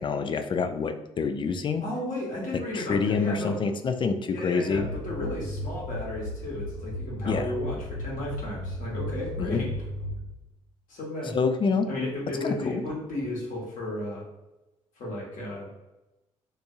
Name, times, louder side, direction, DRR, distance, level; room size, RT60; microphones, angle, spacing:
voice 1, 0.0-1.8 2.7-4.9 7.2-7.5 9.4-9.6 11.3-11.9 12.4-12.7, left 5 dB, 30° left, 8 dB, 0.3 m, -27 dB
voice 2, 1.8-3.6 4.3-9.7 10.9-11.4 11.9-14.2 15.0-15.7, left 1 dB, 50° left, -4 dB, 1.2 m, -33 dB
sound 1, 4.7-10.5, left 1 dB, 80° left, 1.2 m, -35 dB
2.6 x 2.6 x 2.5 m, 0.99 s
figure-of-eight pair, 45°, 17 cm